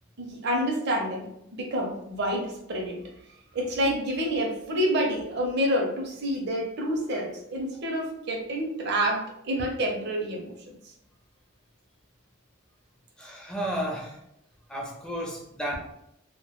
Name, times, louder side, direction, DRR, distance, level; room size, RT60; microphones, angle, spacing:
voice 1, 0.2-3.0 3.5-10.9, equal, 50° right, 1 dB, 0.5 m, -28 dB
voice 2, 13.2-14.2 14.7-15.8, equal, 5° left, -2 dB, 0.4 m, -32 dB
2.1 x 2.1 x 2.8 m, 0.79 s
head